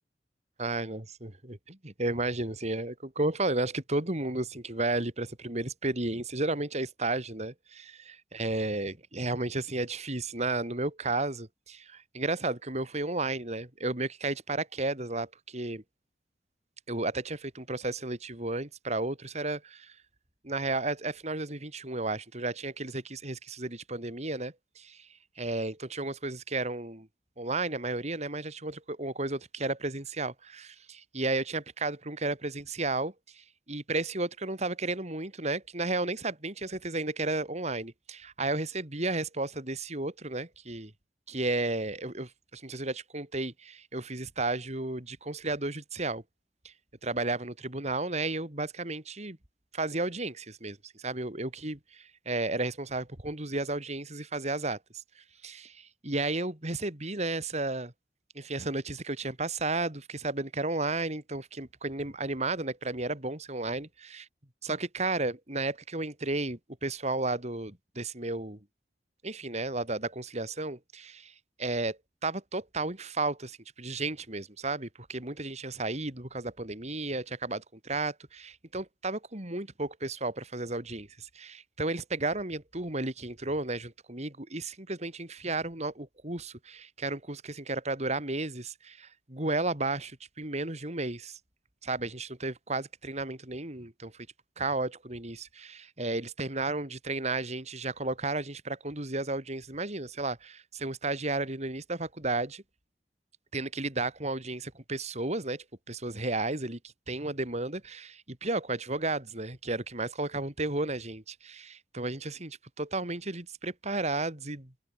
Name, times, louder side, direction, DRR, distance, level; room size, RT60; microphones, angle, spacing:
voice 1, 0.6-15.8 16.9-20.0 20.4-25.1 25.4-27.1 27.4-40.9 41.3-46.2 46.6-46.7 47.0-49.4 49.7-57.9 58.4-64.3 64.6-68.6 69.2-71.3 71.6-91.4 91.8-94.3 94.6-102.6 103.5-106.8 107.1-114.7, right 2 dB, 40° right, 3.4 m, -33 dB
head